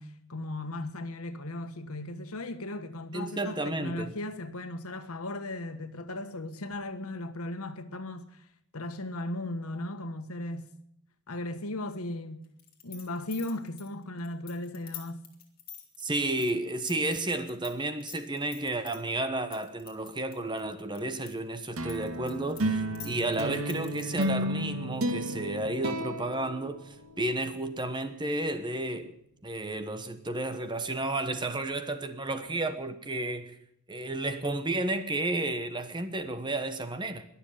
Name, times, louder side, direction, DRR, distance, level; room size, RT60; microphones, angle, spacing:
voice 1, 0.0-8.5 8.7-10.7 11.3-12.4 12.8-15.2, left 1 dB, 85° left, 1.4 m, -37 dB
voice 2, 3.1-4.1 16.0-29.1 29.4-33.6 33.9-37.2, right 2 dB, 20° right, 1.1 m, -32 dB
sound 1, 12.6-17.7 18.0-19.0 19.5-21.3 21.6-24.4, left 11 dB, 40° left, 2.7 m, -46 dB
sound 2, 21.8-27.4, right 1 dB, 80° right, 1.7 m, -32 dB
21.5 x 7.2 x 8.8 m
head